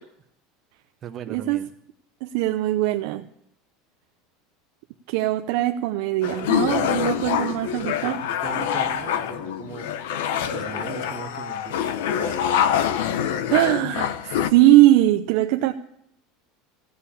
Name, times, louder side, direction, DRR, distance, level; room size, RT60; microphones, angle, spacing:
voice 1, 1.0-1.7 6.7-6.9 8.0-8.2 8.4-9.9 10.4-12.5, right 8 dB, 25° right, 7 dB, 0.8 m, -39 dB
voice 2, 2.2-3.2 5.1-8.2 13.5-15.7, right 15 dB, 55° right, 6 dB, 0.6 m, -20 dB
sound 1, 6.2-14.5, left 9 dB, 75° left, 0.9 m, -25 dB
15.5 x 7.6 x 8.5 m, 0.73 s
supercardioid pair, 175°, 0 cm